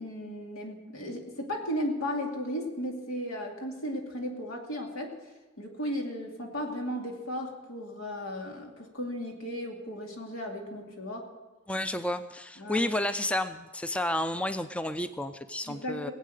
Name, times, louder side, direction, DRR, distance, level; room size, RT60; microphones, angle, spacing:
voice 1, 0.0-5.2 5.6-11.3 12.6-12.9 15.6-16.1, equal, 85° left, 1 dB, 2.6 m, -35 dB
voice 2, 11.7-16.1, left 1 dB, 5° left, 11 dB, 0.4 m, -31 dB
20.0 x 8.4 x 6.5 m, 1.2 s
head